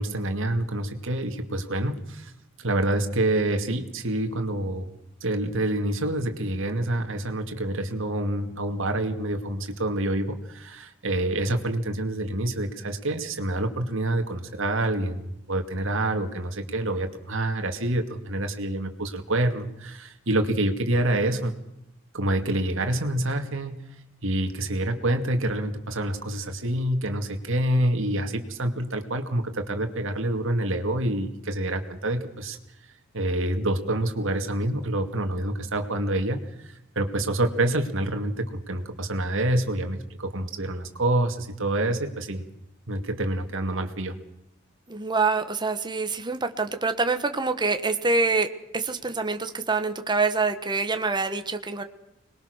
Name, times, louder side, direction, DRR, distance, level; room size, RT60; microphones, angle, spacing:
voice 1, 0.0-2.3 2.6-21.6 22.1-23.8 24.2-32.6 32.8-42.4 42.9-44.2, right 1 dB, 65° right, 6 dB, 2.3 m, -27 dB
voice 2, 44.9-48.5 48.7-51.8, right 3 dB, 20° right, 7 dB, 1.3 m, -25 dB
25.5 x 21.0 x 6.5 m, 0.83 s
head